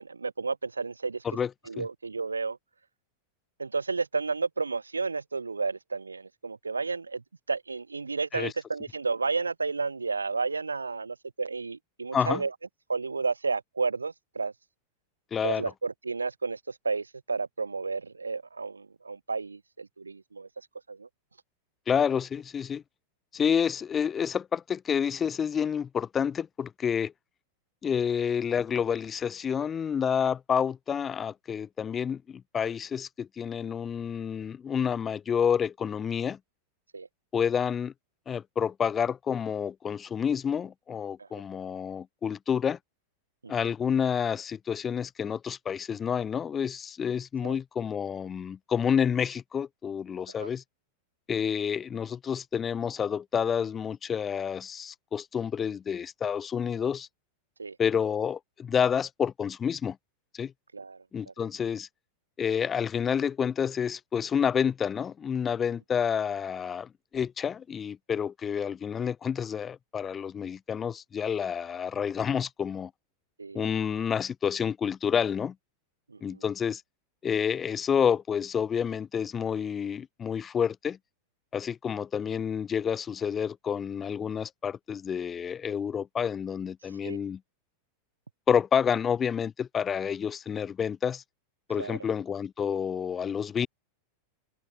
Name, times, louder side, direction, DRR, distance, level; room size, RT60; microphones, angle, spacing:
voice 1, 0.0-1.2 1.7-2.6 3.6-12.5 12.9-14.5 15.4-21.1 36.9-37.1 41.2-41.4 43.4-43.5 47.4-47.6 50.4-50.5 57.6-57.8 60.7-61.3 73.4-73.7 76.1-76.4 87.0-87.2 91.8-92.0, right 4 dB, 80° right, 7.0 m, -32 dB
voice 2, 15.3-15.6 21.9-22.8 23.3-27.1 27.8-36.4 37.3-37.9 38.3-42.8 43.5-50.6 51.3-57.1 57.8-60.0 60.3-60.5 61.1-61.9 62.4-72.9 73.5-75.5 76.2-76.8 77.2-81.0 81.5-87.4 88.5-91.2 91.7-93.7, left 7 dB, 20° left, 4.1 m, -29 dB
figure-of-eight pair, 90°, 0 cm